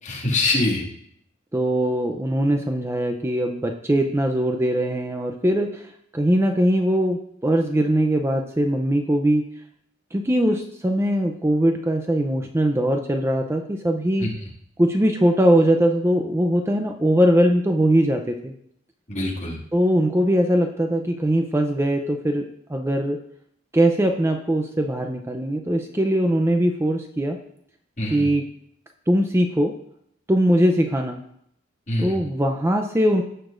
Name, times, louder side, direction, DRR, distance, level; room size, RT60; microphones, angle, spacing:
voice 1, 0.0-0.8 14.2-14.3 19.1-19.6 28.0-28.3 31.9-32.2, left 2 dB, 35° left, -4 dB, 2.2 m, -24 dB
voice 2, 1.5-9.5 10.1-14.3 14.8-18.5 19.7-22.4 22.7-23.2 23.7-27.4 28.1-28.4 29.1-29.7 30.3-31.2 32.0-33.2, right 1 dB, 15° right, 4 dB, 0.5 m, -21 dB
16.5 x 6.7 x 2.5 m, 0.71 s
head